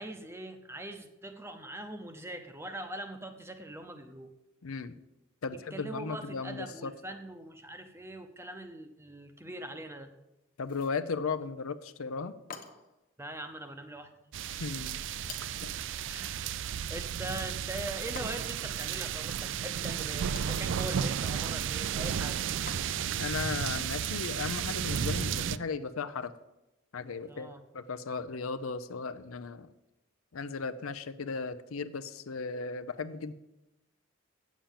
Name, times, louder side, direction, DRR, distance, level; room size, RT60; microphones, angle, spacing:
voice 1, 0.0-4.3 5.5-10.1 13.2-14.2 16.1-22.4 27.3-27.6, right 1 dB, 10° right, 7 dB, 0.7 m, -42 dB
voice 2, 4.6-5.0 5.4-6.9 10.6-12.4 14.5-15.0 15.6-15.8 23.2-26.4 26.9-29.7 30.3-33.3, left 4 dB, 80° left, 11 dB, 0.6 m, -36 dB
sound 1, 10.6-11.0 12.5-13.0 15.2-15.7 18.2-18.7 20.1-20.6 22.7-23.2, left 5 dB, 40° left, 0.9 m, -48 dB
sound 2, 14.3-25.6, right 8 dB, 60° right, 0.3 m, -33 dB
8.8 x 7.3 x 7.2 m, 0.95 s
head